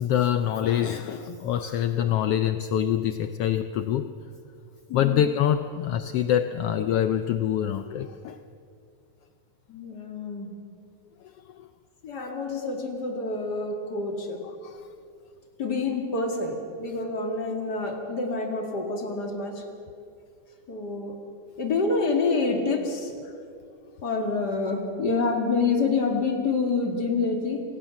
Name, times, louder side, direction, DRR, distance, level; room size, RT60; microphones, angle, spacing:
voice 1, 0.0-4.1 4.9-8.4 11.6-11.7 14.6-14.9, left 10 dB, 90° left, 10 dB, 1.3 m, -25 dB
voice 2, 9.7-10.5 12.0-14.4 15.6-19.6 20.7-21.2 21.6-23.1 24.0-27.6, left 3 dB, 35° left, 4 dB, 2.6 m, -27 dB
27.0 x 17.0 x 7.2 m, 2.3 s
omnidirectional pair, 3.5 m